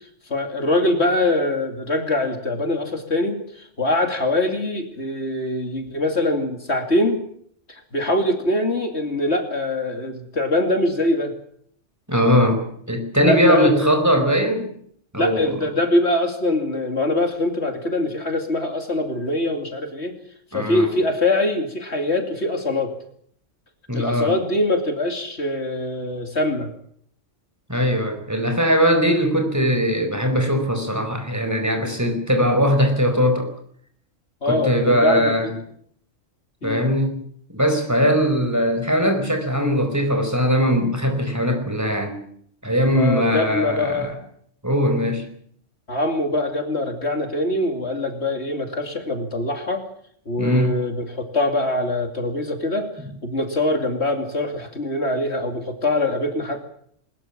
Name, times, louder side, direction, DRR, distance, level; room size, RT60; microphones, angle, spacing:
voice 1, 0.3-7.2 7.7-11.4 13.2-14.0 15.2-20.1 20.5-22.9 23.9-26.7 34.4-35.3 36.6-36.8 42.9-44.1 45.9-49.8 50.3-52.9 53.2-56.7, left 1 dB, 60° left, 4 dB, 3.0 m, -23 dB
voice 2, 12.1-14.7 15.1-15.6 20.5-20.9 23.9-24.4 27.7-33.5 34.5-35.5 36.6-37.2 37.5-42.2 42.6-44.1 44.6-45.2 50.4-50.7, equal, 15° right, 5 dB, 4.6 m, -20 dB
21.0 x 20.5 x 7.4 m, 0.64 s
omnidirectional pair, 1.3 m